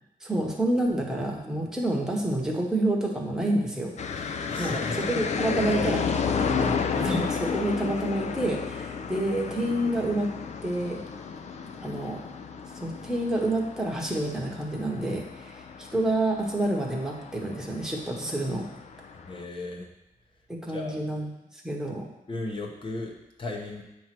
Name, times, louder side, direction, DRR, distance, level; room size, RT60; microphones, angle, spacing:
voice 1, 0.2-6.1 6.4-10.3 10.6-11.0 11.8-12.2 12.8-18.7 20.5-21.3 21.5-22.1, right 1 dB, 5° right, -2 dB, 1.1 m, -28 dB
sound 1, 4.0-19.4, left 5 dB, 50° left, 0.5 m, -32 dB
voice 2, 4.5-5.1 19.2-19.9 20.7-21.0 22.3-23.8, left 2 dB, 35° left, 1 dB, 0.9 m, -35 dB
8.6 x 3.1 x 5.9 m, 0.93 s
wide cardioid pair, 180°, 15 cm